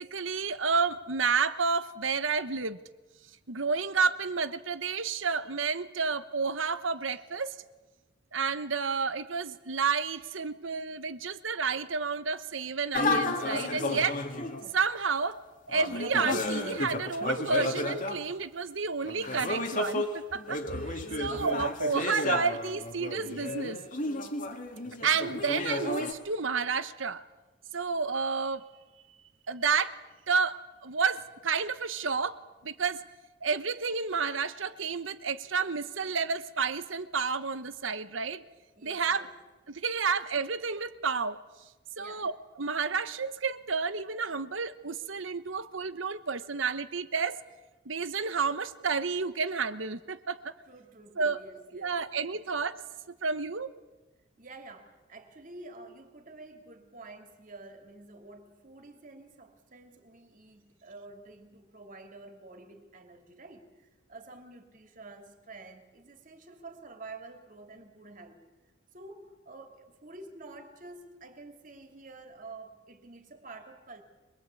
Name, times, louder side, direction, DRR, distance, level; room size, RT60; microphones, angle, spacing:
voice 1, 0.0-2.8 3.5-7.6 8.3-14.2 14.7-15.4 15.7-23.8 25.0-27.2 27.7-28.6 29.5-29.9 30.3-33.0 33.4-38.4 38.8-39.3 39.7-41.4 42.0-47.4 47.8-50.5 51.2-51.4 51.7-52.8 53.1-53.7, right 5 dB, 80° right, 13 dB, 1.1 m, -30 dB
sound 1, 12.9-14.7 15.7-18.3 19.1-26.1, left 2 dB, 45° left, 2.1 m, -32 dB
voice 2, 21.2-21.6 38.8-39.3 42.0-42.3 50.7-52.0 54.4-68.4 68.9-74.0, right 2 dB, 45° right, 5 dB, 3.0 m, -49 dB
24.0 x 22.0 x 8.5 m, 1.2 s
head